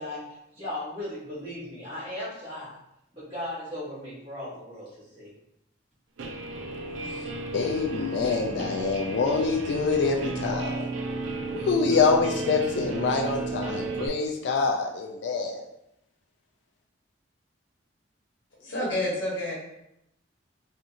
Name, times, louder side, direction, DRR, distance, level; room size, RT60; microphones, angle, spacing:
voice 1, 0.0-2.8 3.1-5.3, left 1 dB, 30° right, -9 dB, 1.4 m, -37 dB
Guitar, 6.2-14.1, right 3 dB, 90° right, 0.4 m, -33 dB
voice 2, 7.5-10.9 11.5-15.6, left 4 dB, 65° left, 1 dB, 0.3 m, -25 dB
voice 3, 18.6-19.5, left 1 dB, 80° left, -4 dB, 1.0 m, -29 dB
2.8 x 2.5 x 2.4 m, 0.81 s
head